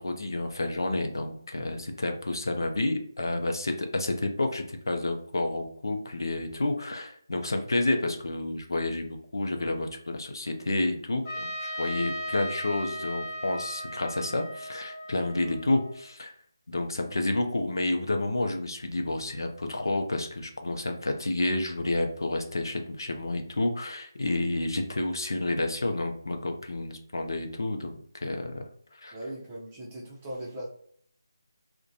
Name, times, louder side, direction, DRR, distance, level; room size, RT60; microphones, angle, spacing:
voice 1, 0.0-16.3 16.7-27.9 28.2-28.6 29.0-29.1, left 2 dB, 75° left, 5 dB, 0.5 m, -30 dB
Trumpet, 11.3-16.1, equal, 25° left, 0.8 m, -37 dB
voice 2, 29.1-30.7, right 1 dB, 15° right, -4 dB, 0.6 m, -39 dB
2.4 x 2.2 x 2.7 m, 0.63 s
figure-of-eight pair, 165°, 2 cm